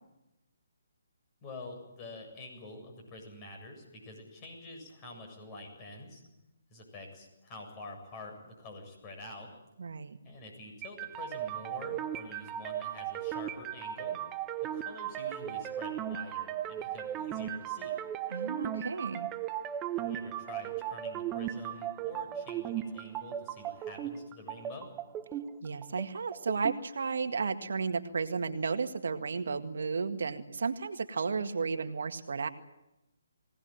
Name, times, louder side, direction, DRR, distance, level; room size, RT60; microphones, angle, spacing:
voice 1, 1.4-6.2 6.7-9.6 10.2-14.2 14.6-18.0 19.9-24.9, left 2 dB, 25° left, 4 dB, 7.6 m, -47 dB
voice 2, 9.8-10.2 18.3-19.3 25.6-32.5, right 5 dB, 70° right, 7 dB, 1.9 m, -33 dB
sound 1, 10.8-26.8, right 11 dB, 15° right, 0.9 m, -37 dB
22.5 x 18.0 x 9.3 m, 0.94 s
hypercardioid pair, 155°, 0 cm